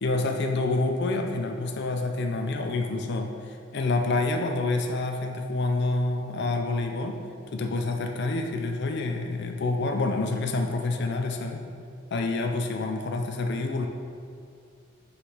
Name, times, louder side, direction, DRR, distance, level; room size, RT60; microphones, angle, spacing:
voice 1, 0.0-7.2 7.5-11.7 12.1-13.9, left 2 dB, 55° left, 4 dB, 0.5 m, -27 dB
7.9 x 5.7 x 4.0 m, 2.4 s
head